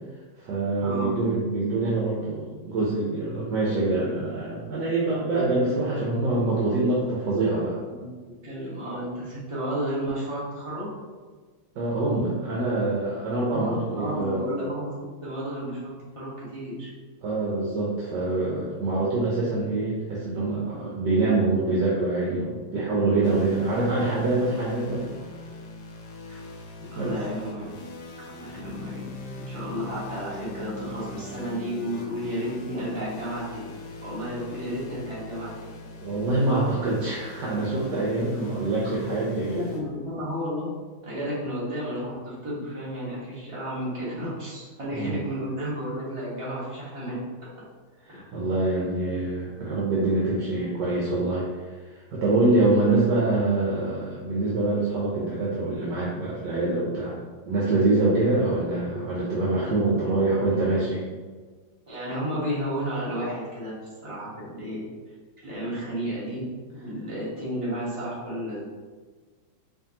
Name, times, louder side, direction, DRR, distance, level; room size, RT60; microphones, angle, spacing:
voice 1, 0.4-7.8 11.8-14.4 17.2-25.0 26.9-27.2 36.0-39.7 44.9-45.2 48.1-51.4 52.1-57.1 57.4-61.0, right 2 dB, 70° right, -6 dB, 1.3 m, -25 dB
voice 2, 8.4-10.9 13.4-14.9 15.2-16.9 26.3-26.4 26.9-27.6 28.3-33.7 34.0-35.7 39.3-40.7 41.0-47.2 48.1-48.2 59.9-60.4 61.9-63.7 64.0-64.8 65.4-66.4 66.7-68.6, equal, 20° right, -8 dB, 1.1 m, -32 dB
sound 1, 23.2-39.8, left 3 dB, 70° left, 1.1 m, -41 dB
4.7 x 2.9 x 2.8 m, 1.4 s
omnidirectional pair, 2.1 m